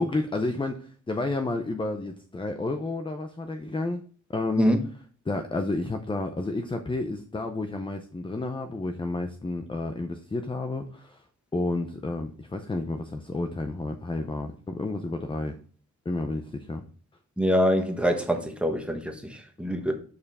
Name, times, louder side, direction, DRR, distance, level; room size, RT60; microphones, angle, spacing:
voice 1, 0.0-4.0 4.3-4.7 5.3-11.2 11.5-15.6 16.1-16.8 19.7-19.8, left 2 dB, 15° left, 0.5 m, -31 dB
voice 2, 17.4-19.9, equal, 5° right, 1.1 m, -25 dB
6.8 x 5.4 x 4.1 m
wide cardioid pair, 160°, 31 cm